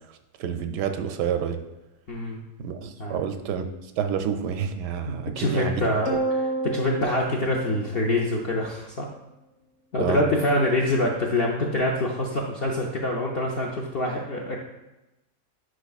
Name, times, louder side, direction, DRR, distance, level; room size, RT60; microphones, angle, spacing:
voice 1, 0.4-1.6 2.6-3.7 4.0-5.9 10.0-10.2, right 7 dB, 85° right, 7 dB, 1.2 m, -28 dB
voice 2, 2.1-2.4 3.0-3.2 5.1-6.1 6.7-9.1 9.9-14.6, left 1 dB, 60° left, -2 dB, 0.6 m, -25 dB
sound 1, 6.0-8.6, right 2 dB, 30° right, 0.4 m, -30 dB
8.9 x 4.7 x 2.4 m, 0.97 s
omnidirectional pair, 1.8 m